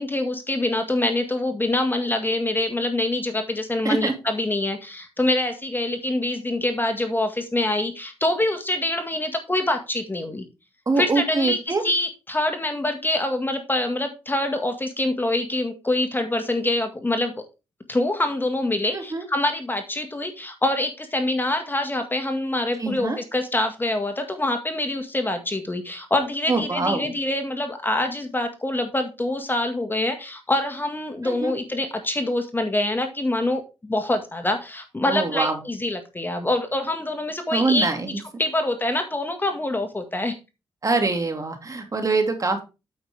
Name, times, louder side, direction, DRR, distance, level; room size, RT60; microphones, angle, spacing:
voice 1, 0.0-10.4 11.0-17.3 17.9-38.1 38.4-40.4, left 1 dB, 20° left, 6 dB, 1.8 m, -25 dB
voice 2, 10.9-11.8 18.9-19.2 22.8-23.2 26.5-27.1 31.2-31.5 35.1-35.6 37.5-38.2 40.8-42.6, right 3 dB, 35° right, 5 dB, 2.4 m, -24 dB
9.1 x 7.2 x 3.5 m, 0.28 s
cardioid pair, 65°, 10 cm